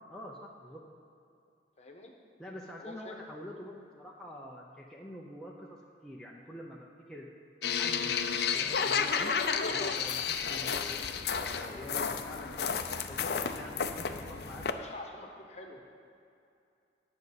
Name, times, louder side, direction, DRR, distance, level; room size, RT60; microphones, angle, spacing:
voice 1, 0.1-0.8 2.4-7.3 7.8-9.3 9.6-14.7, left 1 dB, 5° left, -3 dB, 0.7 m, -46 dB
voice 2, 1.8-2.1 2.8-3.1 14.3-14.5 14.8-15.8, left 2 dB, 35° left, 2 dB, 1.1 m, -47 dB
sound 1, 7.6-14.7, left 6 dB, 65° left, 0.5 m, -32 dB
10.0 x 5.3 x 8.0 m, 2.5 s
head